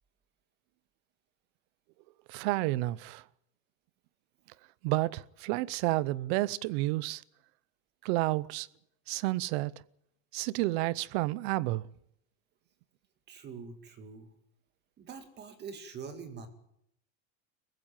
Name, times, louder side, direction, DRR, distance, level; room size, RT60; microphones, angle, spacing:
voice 1, 2.3-3.2 4.8-7.2 8.0-8.7 9.1-9.7 10.3-11.8, right 19 dB, 50° right, 0.7 m, -30 dB
voice 2, 13.3-14.3 15.0-16.5, right 5 dB, 25° right, 2.2 m, -44 dB
23.0 x 15.0 x 9.1 m
supercardioid pair, 165°, 40 cm